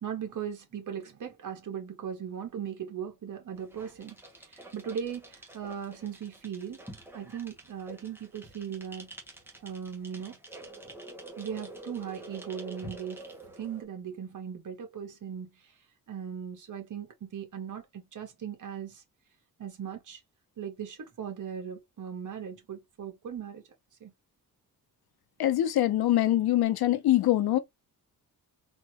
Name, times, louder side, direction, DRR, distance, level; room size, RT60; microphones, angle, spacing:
voice 1, 0.0-6.8 7.1-9.1 9.6-10.4 11.4-13.2 13.5-15.7 16.1-19.0 19.6-20.2 20.6-23.6 24.0-24.1, right 8 dB, 55° right, 1.8 m, -38 dB
sound 1, 3.5-13.8, right 2 dB, 5° right, 1.4 m, -47 dB
voice 2, 25.4-27.6, left 13 dB, 80° left, 0.9 m, -24 dB
4.1 x 2.9 x 3.0 m
cardioid pair, 120°, 37 cm